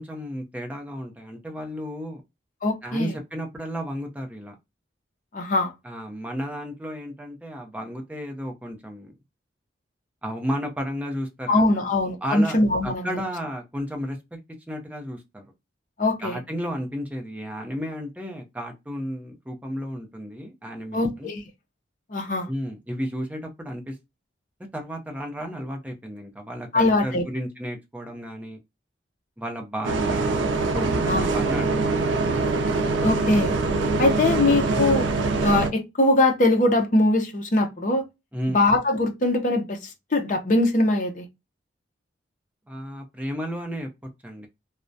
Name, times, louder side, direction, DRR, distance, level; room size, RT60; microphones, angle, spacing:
voice 1, 0.0-2.2 2.8-4.5 5.8-9.1 10.2-11.9 12.2-14.4 14.7-15.4 16.2-21.3 22.5-24.0 24.7-28.6 29.4-32.0 38.3-38.6 42.7-43.9 44.2-44.5, equal, 10° right, 0.5 m, -33 dB
voice 2, 2.6-3.1 5.3-5.7 11.5-13.2 16.0-16.4 20.9-21.4 22.1-22.5 26.7-27.2 31.1-31.2 33.0-33.5 34.0-35.1 35.4-38.1 38.5-41.3, left 2 dB, 45° left, 0.5 m, -22 dB
Bus, 29.8-35.7, right 3 dB, 85° right, 0.4 m, -23 dB
2.3 x 2.1 x 2.5 m
head